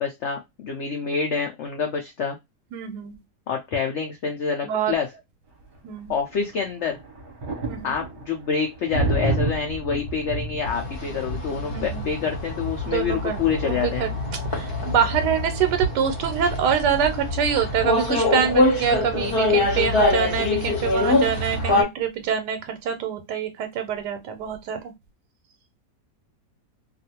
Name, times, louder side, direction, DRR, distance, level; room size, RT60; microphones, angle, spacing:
voice 1, 0.0-2.4 3.5-5.1 6.1-7.0 7.8-14.0, left 6 dB, 70° left, 0.6 m, -27 dB
voice 2, 2.7-3.2 4.6-4.9 5.8-6.2 7.6-8.0 11.7-12.1 12.8-14.2 14.4-24.9, right 8 dB, 90° right, 1.2 m, -25 dB
sound 1, 6.9-8.2 8.6-12.0, right 2 dB, 45° right, 0.9 m, -28 dB
sound 2, 10.6-21.8, left 2 dB, 45° left, 0.9 m, -24 dB
2.5 x 2.4 x 2.7 m
omnidirectional pair, 1.7 m